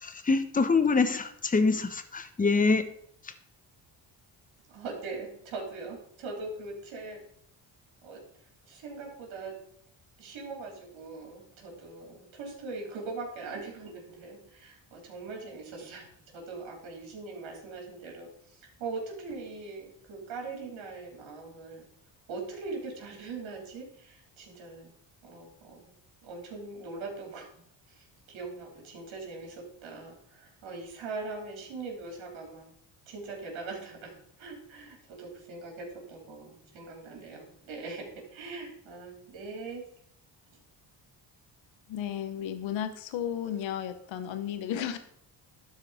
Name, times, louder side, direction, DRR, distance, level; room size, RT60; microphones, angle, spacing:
voice 1, 0.0-2.9 3.2-3.3, left 4 dB, 20° left, 9 dB, 1.0 m, -25 dB
voice 2, 4.7-7.2 8.0-8.2 8.6-9.6 10.2-21.9 22.3-24.9 25.2-25.9 26.2-32.7 33.1-39.8, right 3 dB, 90° right, 0 dB, 3.6 m, -41 dB
voice 3, 41.9-45.0, left 9 dB, 80° left, 10 dB, 1.0 m, -33 dB
12.5 x 4.7 x 4.9 m, 0.67 s
cardioid pair, 90°, 45 cm